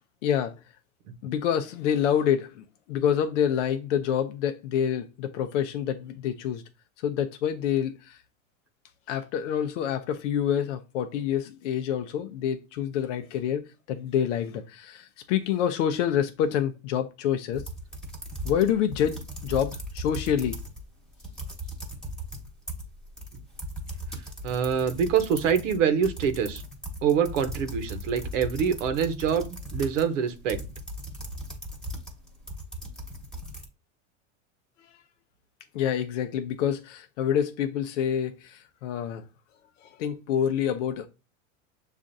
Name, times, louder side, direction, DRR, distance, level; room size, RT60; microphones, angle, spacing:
voice 1, 0.2-0.5 1.2-6.6 7.0-8.2 9.1-17.7 18.4-20.6 35.7-39.2 39.8-41.1, left 9 dB, 85° left, 0.6 m, -27 dB
sound 1, 17.5-20.8 21.1-33.7, equal, ahead, 1.1 m, -38 dB
voice 2, 24.4-26.6 27.0-30.6, right 7 dB, 90° right, 0.9 m, -25 dB
7.1 x 2.5 x 2.6 m
supercardioid pair, 125°, 36 cm